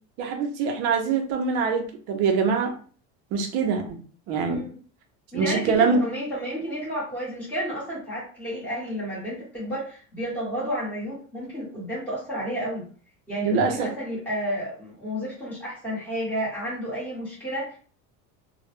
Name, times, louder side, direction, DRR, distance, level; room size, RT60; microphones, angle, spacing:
voice 1, 0.2-2.7 3.3-4.0 4.3-4.6 5.3-6.1 13.4-13.9, right 5 dB, 40° right, 4 dB, 0.4 m, -24 dB
voice 2, 5.3-12.9 13.3-17.8, equal, 5° left, -9 dB, 1.0 m, -31 dB
2.1 x 2.0 x 2.9 m, 0.42 s
cardioid pair, 170°, 36 cm